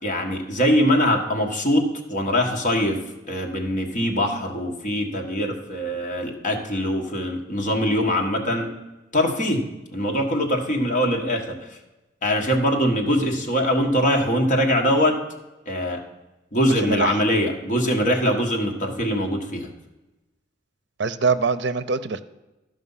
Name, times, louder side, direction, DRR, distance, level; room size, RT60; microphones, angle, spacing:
voice 1, 0.0-3.0 3.3-8.7 9.1-11.8 12.2-15.2 15.6-16.0 16.5-19.7, equal, 45° left, 1 dB, 1.5 m, -22 dB
voice 2, 16.8-17.1 21.0-22.2, right 4 dB, 70° right, 12 dB, 0.5 m, -23 dB
13.0 x 5.3 x 5.6 m, 1.0 s
head